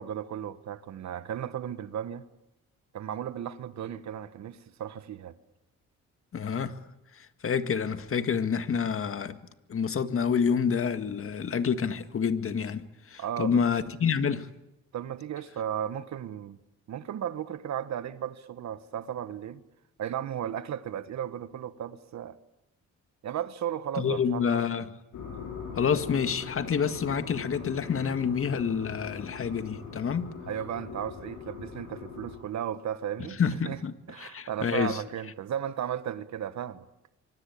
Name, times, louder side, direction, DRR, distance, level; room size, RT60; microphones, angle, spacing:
voice 1, 0.0-2.2 2.9-5.3 13.2-13.6 14.9-16.6 16.9-19.6 20.0-22.4 23.2-24.6 30.5-33.8 34.1-36.9, right 9 dB, 65° right, 1.4 m, -35 dB
voice 2, 6.3-6.8 7.2-9.4 9.7-14.5 24.0-24.9 25.8-30.3 33.4-35.0, left 6 dB, 45° left, 1.9 m, -28 dB
sound 1, 25.1-32.4, left 6 dB, 75° left, 6.8 m, -41 dB
25.5 x 24.0 x 8.7 m
cardioid pair, 90°, 30 cm